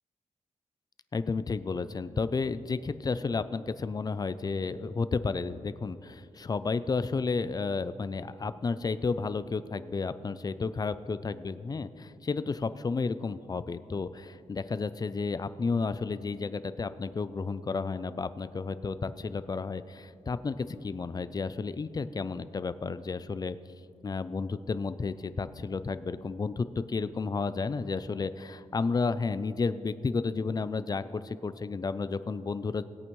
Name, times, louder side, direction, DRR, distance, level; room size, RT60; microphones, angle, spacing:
voice 1, 1.1-23.6 24.0-32.8, left 4 dB, 30° left, 13 dB, 0.4 m, -32 dB
19.0 x 8.7 x 3.1 m, 2.5 s
wide cardioid pair, 100°, 13 cm